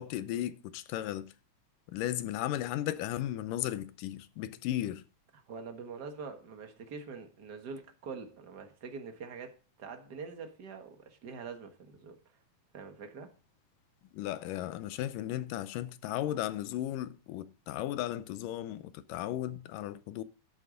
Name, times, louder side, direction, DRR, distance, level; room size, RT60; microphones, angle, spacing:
voice 1, 0.0-1.3 1.9-5.0 14.1-20.2, left 13 dB, 80° left, 2.2 m, -35 dB
voice 2, 5.5-12.2 12.7-13.3, right 5 dB, 50° right, 1.2 m, -44 dB
12.0 x 8.6 x 3.8 m
omnidirectional pair, 4.0 m